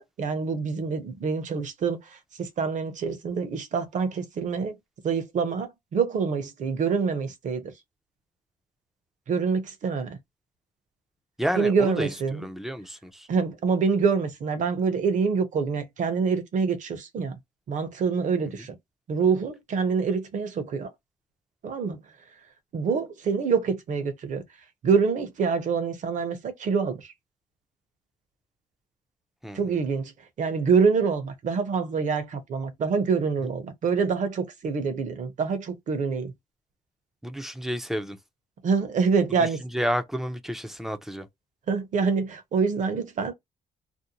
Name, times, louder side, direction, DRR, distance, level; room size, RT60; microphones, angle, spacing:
voice 1, 0.0-2.0 2.4-4.8 5.0-7.6 9.3-10.2 11.6-12.4 13.3-17.4 17.7-18.8 19.1-20.9 21.6-22.0 22.7-24.4 24.8-27.1 29.5-30.1 30.4-36.3 38.6-39.6 41.7-43.3, right 5 dB, 50° right, 0.7 m, -26 dB
voice 2, 11.4-13.3 29.4-29.8 33.4-33.5 37.2-38.2 39.4-41.3, equal, ahead, 0.4 m, -31 dB
2.6 x 2.1 x 2.8 m
cardioid pair, 115°, 16 cm